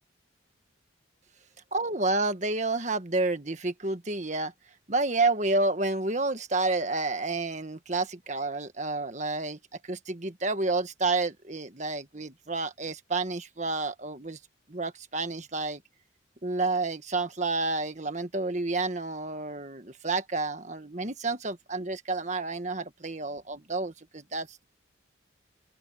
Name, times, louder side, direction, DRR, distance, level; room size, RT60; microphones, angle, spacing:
voice 1, 1.7-4.5 4.9-14.4 14.7-15.8 16.4-24.6, right 3 dB, 40° right, 1.6 m, -30 dB
open air
head